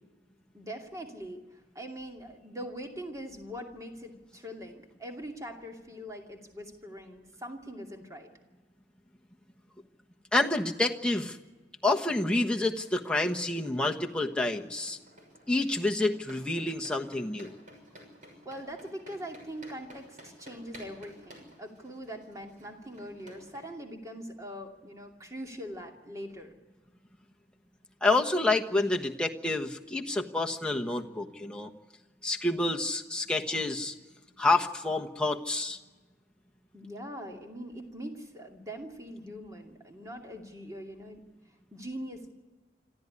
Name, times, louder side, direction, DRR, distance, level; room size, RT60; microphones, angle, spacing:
voice 1, 0.5-8.3 18.4-26.5 36.7-41.2 41.7-42.3, equal, 20° right, 2 dB, 2.6 m, -42 dB
voice 2, 10.3-11.4 11.8-15.0 15.5-17.5 28.0-31.7 32.2-33.9 34.4-35.8, left 2 dB, 5° left, 1 dB, 1.3 m, -28 dB
sound 1, 12.7-23.6, equal, 45° right, 6.3 m, -54 dB
26.0 x 14.0 x 9.9 m, 1.3 s
head